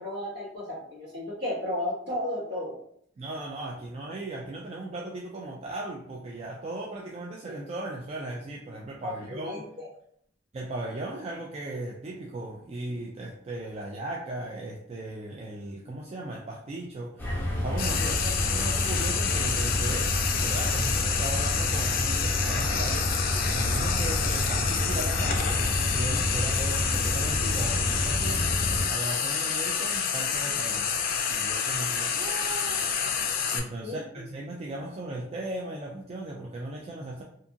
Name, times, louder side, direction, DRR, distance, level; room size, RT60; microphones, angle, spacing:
voice 1, 0.0-2.8 9.0-9.9 18.0-18.1 18.5-18.6 33.8-34.2, left 1 dB, 60° right, -6 dB, 1.4 m, -34 dB
voice 2, 3.2-9.7 10.5-20.1 20.4-30.9 31.3-37.2, right 2 dB, 35° right, -2 dB, 0.3 m, -37 dB
sound 1, 17.2-28.8, left 1 dB, 10° left, 0.7 m, -29 dB
Frying (food), 17.8-33.6, left 6 dB, 50° left, 0.4 m, -28 dB
2.6 x 2.4 x 2.7 m, 0.65 s
head